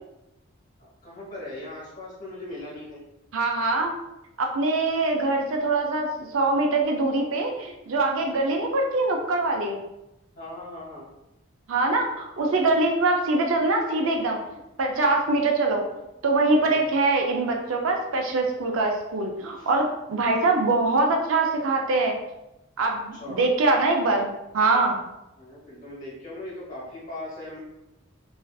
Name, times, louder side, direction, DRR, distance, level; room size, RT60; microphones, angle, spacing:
voice 1, 0.8-3.0 10.4-11.1 16.5-16.8 19.5-19.7 23.2-23.4 25.4-27.6, left 1 dB, 40° left, -7 dB, 1.1 m, -39 dB
voice 2, 3.3-3.9 4.4-9.8 11.7-15.8 16.2-22.1 22.8-25.0, right 2 dB, 75° right, 2 dB, 0.4 m, -23 dB
2.4 x 2.4 x 2.2 m, 0.93 s
head